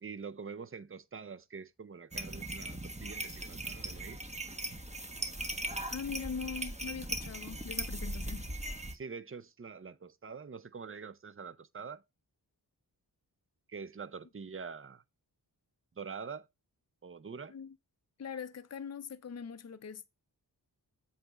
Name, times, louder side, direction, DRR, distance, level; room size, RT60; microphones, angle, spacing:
voice 1, 0.0-4.3 8.9-12.0 13.7-15.0 16.0-16.5 17.0-17.5, right 5 dB, 30° right, 0.6 m, -45 dB
sound 1, 2.1-9.0, right 1 dB, 15° right, 1.1 m, -39 dB
voice 2, 5.9-8.5 17.5-17.7 18.2-20.1, left 6 dB, 40° left, 0.6 m, -41 dB
7.7 x 3.3 x 5.9 m
cardioid pair, 45°, 40 cm